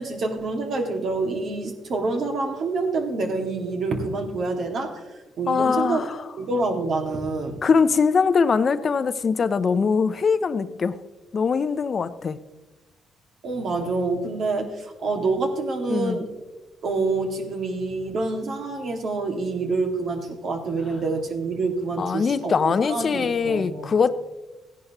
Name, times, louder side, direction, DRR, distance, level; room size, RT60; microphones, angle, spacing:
voice 1, 0.0-5.1 5.4-6.0 6.4-7.6 13.4-16.3 16.8-23.9, right 3 dB, 60° right, 4 dB, 2.0 m, -27 dB
voice 2, 5.5-6.2 7.6-11.0 11.3-12.4 15.9-16.2 22.0-24.1, left 5 dB, 45° left, 13 dB, 0.5 m, -22 dB
15.5 x 10.5 x 3.0 m, 1.1 s
cardioid pair, 90°, 0 cm